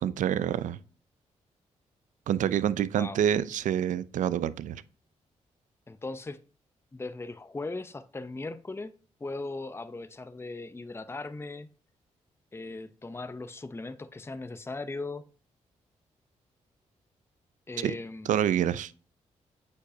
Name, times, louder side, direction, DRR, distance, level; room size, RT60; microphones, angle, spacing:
voice 1, 0.0-0.8 2.3-4.8 17.8-17.9 18.3-18.9, right 10 dB, 75° right, 0.5 m, -27 dB
voice 2, 5.9-6.4 6.9-8.9 9.2-11.7 12.5-15.2 17.7-18.3, left 3 dB, 20° left, 0.6 m, -38 dB
8.3 x 5.3 x 2.7 m
supercardioid pair, 55°, 13 cm